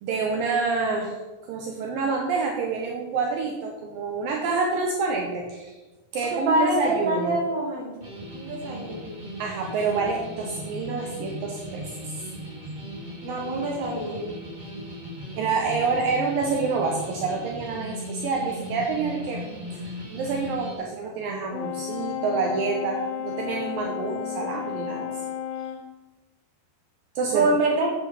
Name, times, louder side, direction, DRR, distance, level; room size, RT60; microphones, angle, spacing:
voice 1, 0.0-1.1 1.4-5.8 6.1-7.4 9.4-12.2 15.4-19.4 19.8-25.1 27.2-27.5, right 4 dB, 80° right, 0 dB, 2.0 m, -27 dB
voice 2, 6.3-8.0 8.3-9.2 13.2-14.3 27.3-27.9, right 2 dB, 50° right, -4 dB, 4.0 m, -25 dB
sound 1, 8.0-20.7, equal, 35° right, 0.7 m, -37 dB
Brass instrument, 21.5-25.9, left 9 dB, 85° left, 3.1 m, -33 dB
8.7 x 8.1 x 5.5 m, 1.2 s
omnidirectional pair, 5.4 m